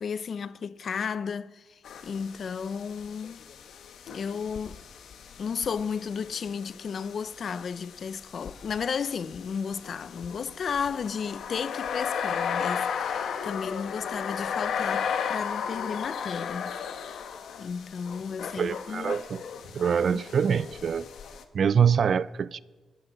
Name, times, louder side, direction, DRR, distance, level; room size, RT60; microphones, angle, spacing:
voice 1, 0.0-3.4 4.1-4.8 5.4-16.8 17.6-19.2 19.9-20.2, left 6 dB, 55° left, 0.5 m, -33 dB
sound 1, 1.8-21.4, left 7 dB, 85° left, 1.0 m, -35 dB
voice 2, 18.6-19.4 19.7-21.1 21.5-22.6, right 7 dB, 55° right, 0.4 m, -24 dB
25.0 x 12.0 x 3.9 m
wide cardioid pair, 130°, 0 cm